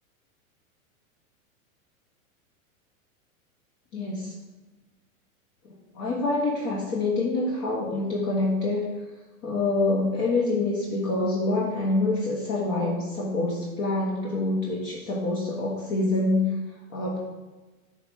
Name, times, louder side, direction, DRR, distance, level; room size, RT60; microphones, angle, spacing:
voice 1, 3.9-4.3 5.9-8.8 9.4-16.5 16.9-17.2, left 2 dB, 45° left, -4 dB, 1.5 m, -26 dB
5.7 x 3.6 x 5.9 m, 1.2 s
hypercardioid pair, 120°, 42 cm